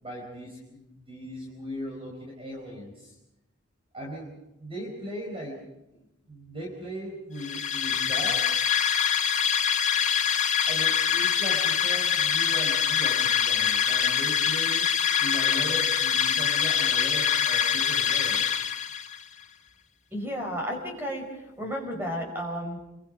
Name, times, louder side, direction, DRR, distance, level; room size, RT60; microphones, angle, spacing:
voice 1, 0.0-3.2 3.9-5.6 5.9-8.5 10.6-14.9 15.2-18.6, equal, 30° right, -1 dB, 4.6 m, -38 dB
sound 1, 7.4-19.2, left 8 dB, 40° left, 1.5 m, -24 dB
voice 2, 20.1-21.3 21.6-22.8, equal, 10° right, 2 dB, 5.6 m, -32 dB
29.5 x 23.0 x 5.4 m, 0.95 s
head